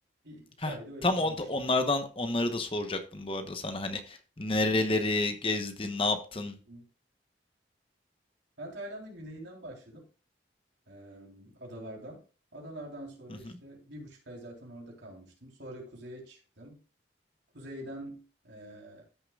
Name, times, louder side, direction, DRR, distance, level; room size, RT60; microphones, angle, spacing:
voice 1, 0.2-1.8 6.5-6.9 8.6-10.1 10.9-12.2 12.5-16.8 17.5-19.0, right 1 dB, 80° right, -1 dB, 3.6 m, -45 dB
voice 2, 1.0-6.6, left 2 dB, 30° left, 7 dB, 0.9 m, -29 dB
13.5 x 6.6 x 2.4 m, 0.35 s
head